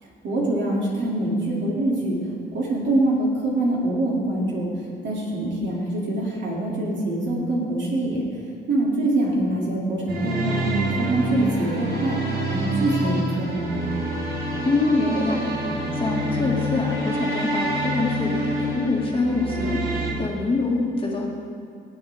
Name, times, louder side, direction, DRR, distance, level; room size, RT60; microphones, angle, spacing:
voice 1, 0.2-2.2 2.5-4.7 5.0-8.2 8.7-12.2 12.5-13.8, right 1 dB, 65° right, -4 dB, 2.9 m, -24 dB
sound 1, 10.1-20.1, right 1 dB, 50° right, 2.3 m, -27 dB
voice 2, 14.6-15.4 15.9-21.3, left 3 dB, 25° left, -2 dB, 2.1 m, -25 dB
17.5 x 7.8 x 3.6 m, 2.3 s
cardioid pair, 90°, 20 cm